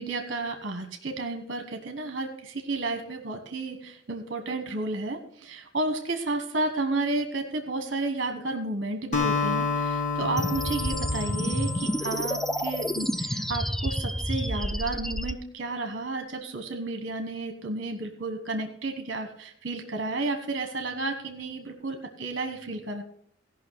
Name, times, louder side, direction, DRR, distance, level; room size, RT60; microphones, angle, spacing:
voice 1, 0.0-23.0, right 2 dB, 50° right, 5 dB, 1.3 m, -32 dB
Acoustic guitar, 9.1-13.6, left 4 dB, 40° left, 2.1 m, -30 dB
sound 1, 10.4-15.3, equal, ahead, 0.4 m, -29 dB
17.0 x 5.7 x 5.8 m, 0.63 s
head